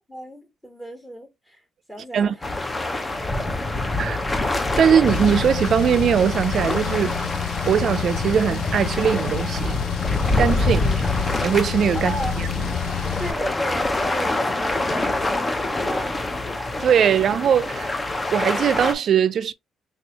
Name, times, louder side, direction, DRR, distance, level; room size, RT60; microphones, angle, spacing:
voice 1, 0.1-1.6 1.9-2.4 3.1-4.2 10.6-11.0 11.9-12.4 13.2-16.1, right 1 dB, 10° left, 1.4 m, -35 dB
sound 1, 2.4-18.9, left 2 dB, 25° left, 0.6 m, -26 dB
voice 2, 4.8-7.2 7.7-9.8 10.4-10.8 11.4-12.8 16.8-17.9 18.3-19.5, right 8 dB, 60° right, 0.3 m, -20 dB
Car, 5.1-13.3, left 11 dB, 80° left, 0.4 m, -29 dB
3.4 x 2.7 x 2.9 m
cardioid pair, 90°, 0 cm